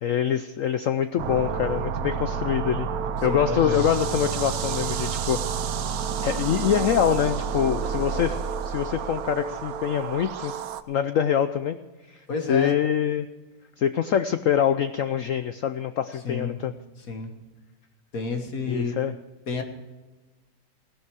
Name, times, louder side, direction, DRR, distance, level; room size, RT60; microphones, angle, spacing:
voice 1, 0.0-2.9 3.2-5.4 6.2-10.5 10.9-11.8 12.1-13.3 13.8-16.7 18.7-19.1, left 9 dB, 85° left, 11 dB, 0.7 m, -25 dB
sound 1, 1.2-10.8, right 7 dB, 65° right, 1.0 m, -29 dB
voice 2, 3.2-3.9 12.3-12.8 16.2-16.6 17.0-17.3 18.1-18.9 19.5-19.6, left 4 dB, 50° left, 5 dB, 1.7 m, -30 dB
16.5 x 11.5 x 4.7 m, 1.2 s
omnidirectional pair, 2.0 m